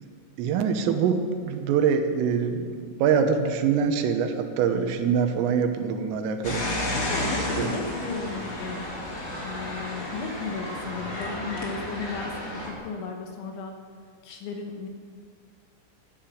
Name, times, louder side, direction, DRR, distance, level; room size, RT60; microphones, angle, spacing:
voice 1, 0.4-2.7 3.0-6.7 7.6-7.7, right 6 dB, 80° right, 6 dB, 3.7 m, -24 dB
sound 1, 6.4-12.7, left 1 dB, 35° left, 2.0 m, -32 dB
voice 2, 7.0-8.9 9.4-13.7 14.2-14.9, left 4 dB, 75° left, 3 dB, 3.5 m, -35 dB
14.5 x 10.5 x 8.6 m, 2.2 s
omnidirectional pair, 5.9 m